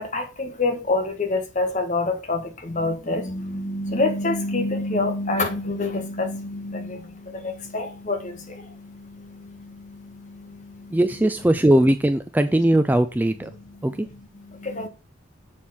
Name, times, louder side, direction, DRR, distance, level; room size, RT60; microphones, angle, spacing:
voice 1, 0.0-11.3 13.5-14.9, left 2 dB, 35° left, 1.5 m, -28 dB
voice 2, 10.9-13.5 13.8-14.1, right 1 dB, 10° right, 0.3 m, -19 dB
7.2 x 4.3 x 6.2 m
head